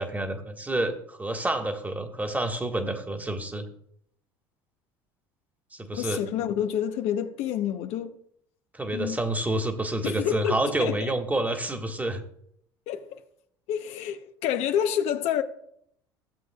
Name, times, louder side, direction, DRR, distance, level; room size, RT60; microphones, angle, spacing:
voice 1, 0.0-3.7 5.7-6.2 8.7-12.2, right 1 dB, 15° right, 1.6 m, -28 dB
voice 2, 5.9-8.1 8.9-9.2 10.0-11.1 12.9-13.2 13.7-15.4, left 9 dB, 60° left, 0.8 m, -28 dB
15.5 x 7.7 x 2.4 m
hypercardioid pair, 65°, 12 cm